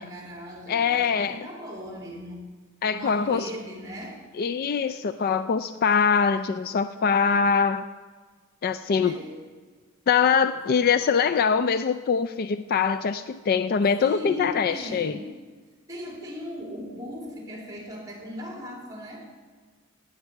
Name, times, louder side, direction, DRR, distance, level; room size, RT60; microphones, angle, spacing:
voice 1, 0.0-2.5 3.0-4.2 8.9-9.5 10.6-10.8 14.0-15.3 15.9-19.3, equal, 15° right, -1 dB, 2.7 m, -38 dB
voice 2, 0.7-1.4 2.8-3.5 4.4-7.9 8.6-9.1 10.1-15.1, left 6 dB, 45° left, 12 dB, 0.3 m, -23 dB
17.5 x 8.8 x 4.7 m, 1.5 s
head